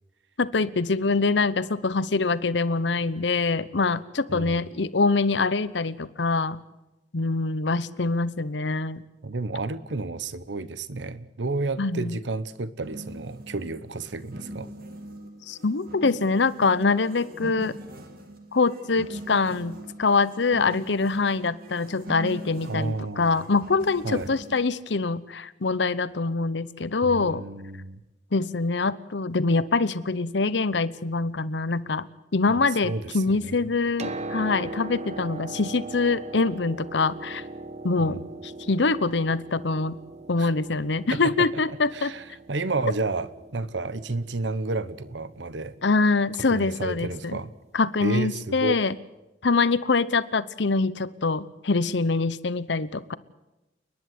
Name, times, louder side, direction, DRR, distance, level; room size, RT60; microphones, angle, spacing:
voice 1, 0.4-6.6 7.1-9.0 11.8-12.2 15.5-17.7 18.5-27.4 28.3-37.4 37.8-40.0 40.3-42.1 45.8-47.4 47.7-49.0 49.4-53.1, left 3 dB, 75° left, 16 dB, 0.9 m, -24 dB
voice 2, 4.3-4.6 9.2-14.7 22.6-23.5 24.0-24.3 27.0-28.0 32.5-33.7 38.0-38.2 40.4-40.5 41.1-45.8 46.5-47.5 48.0-48.8, right 3 dB, 80° right, 15 dB, 1.0 m, -31 dB
sound 1, 12.8-24.7, right 1 dB, 55° right, 2.3 m, -41 dB
Piano, 33.7-47.5 48.6-48.7, right 3 dB, 40° right, 1.1 m, -40 dB
29.5 x 10.5 x 9.5 m, 1.0 s
head